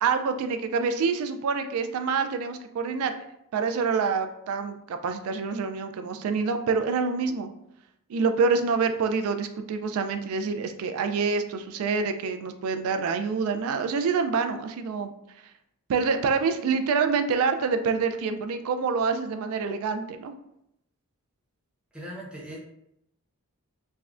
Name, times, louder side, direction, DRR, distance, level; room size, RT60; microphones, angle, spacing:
voice 1, 0.0-3.2 3.5-7.5 8.1-15.2 15.9-20.3, right 5 dB, 70° right, 9 dB, 0.3 m, -26 dB
voice 2, 21.9-22.6, equal, 5° right, -5 dB, 0.6 m, -39 dB
3.5 x 2.1 x 2.4 m, 0.79 s
head